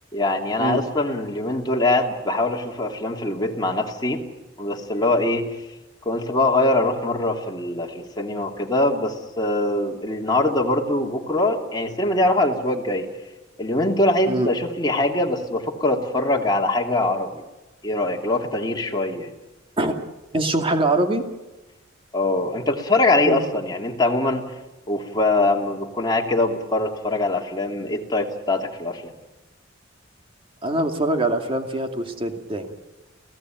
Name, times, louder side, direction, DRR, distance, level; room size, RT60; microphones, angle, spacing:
voice 1, 0.1-4.2 4.6-5.6 6.0-13.1 13.6-17.4 17.8-19.3 22.1-24.5 24.9-29.1, left 2 dB, 20° left, 1 dB, 2.7 m, -23 dB
voice 2, 20.3-21.2 23.2-23.5 30.6-32.7, right 1 dB, 30° right, 5 dB, 2.4 m, -23 dB
29.5 x 16.5 x 9.2 m, 1.1 s
head